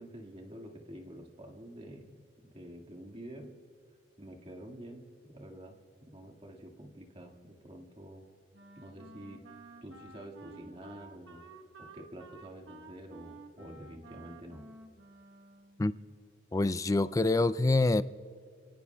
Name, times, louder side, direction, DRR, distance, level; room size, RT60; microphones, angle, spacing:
voice 1, 0.0-3.6 4.2-8.2 8.8-9.4 9.8-14.7, right 1 dB, 30° right, 1.8 m, -48 dB
Wind instrument woodwind instrument, 8.5-15.9, right 2 dB, 70° right, 1.1 m, -52 dB
voice 2, 16.5-18.0, left 2 dB, 15° left, 0.3 m, -26 dB
29.5 x 18.0 x 2.3 m
head